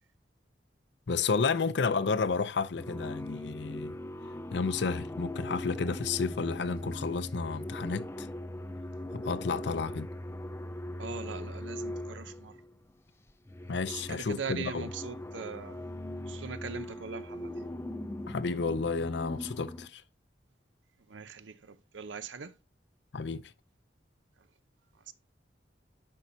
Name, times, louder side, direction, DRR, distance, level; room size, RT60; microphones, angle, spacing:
voice 1, 1.1-4.0 4.5-8.3 9.1-10.1 13.7-14.9 18.3-20.0 23.1-23.4, left 4 dB, 70° left, 0.6 m, -31 dB
sound 1, 2.7-12.8 13.3-19.9, left 1 dB, 15° left, 0.4 m, -40 dB
voice 2, 11.0-12.5 13.9-15.8 16.3-17.5 21.1-22.5 25.1-25.2, right 5 dB, 85° right, 0.7 m, -41 dB
10.5 x 5.4 x 2.8 m
head